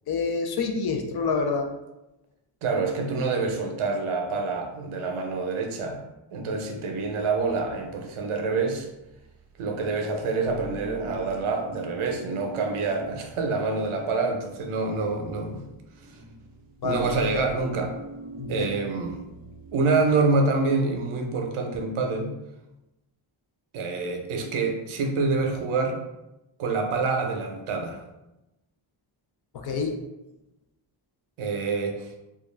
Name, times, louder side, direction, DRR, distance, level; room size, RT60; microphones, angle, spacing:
voice 1, 0.1-1.7 16.8-17.1 18.4-18.7 29.5-29.9, left 4 dB, 50° left, 4 dB, 0.5 m, -27 dB
voice 2, 2.6-6.0 6.3-8.9 9.6-15.6 16.8-18.0 18.5-19.2 19.7-22.4 23.7-26.0 26.6-28.0 31.4-32.1, right 3 dB, 85° right, 3 dB, 0.6 m, -26 dB
sound 1, 6.9-19.8, right 1 dB, 20° right, 0.5 m, -43 dB
2.3 x 2.3 x 3.1 m, 0.96 s
cardioid pair, 85°, 49 cm